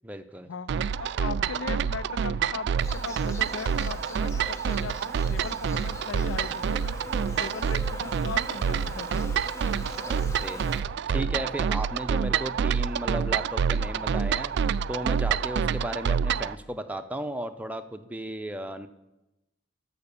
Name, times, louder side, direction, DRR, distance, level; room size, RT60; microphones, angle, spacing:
voice 1, 0.0-0.5 10.0-10.6 11.1-14.6 14.9-18.9, right 1 dB, 10° right, 7 dB, 0.6 m, -35 dB
sound 1, 0.7-16.6, right 7 dB, 65° right, 0.3 m, -27 dB
voice 2, 1.0-7.0 7.4-9.4, left 6 dB, 85° left, 18 dB, 0.4 m, -38 dB
Insect, 2.8-10.8, left 3 dB, 15° left, 0.9 m, -43 dB
13.5 x 5.8 x 6.9 m, 0.97 s
head